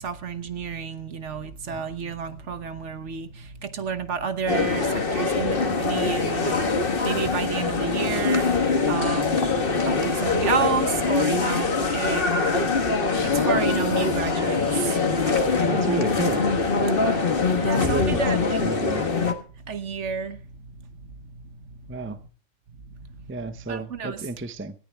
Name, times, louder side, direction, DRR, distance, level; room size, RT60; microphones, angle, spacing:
voice 1, 0.0-15.8 16.9-18.6 18.9-19.0 19.5-22.3 22.7-24.3, right 6 dB, 60° right, 1.3 m, -32 dB
sound 1, 4.5-19.3, left 4 dB, 45° left, 1.6 m, -23 dB
voice 2, 15.7-16.4 17.8-18.2 18.6-19.1 21.9-22.2 23.3-24.7, right 3 dB, 15° right, 0.6 m, -31 dB
18.5 x 14.0 x 3.5 m
omnidirectional pair, 1.4 m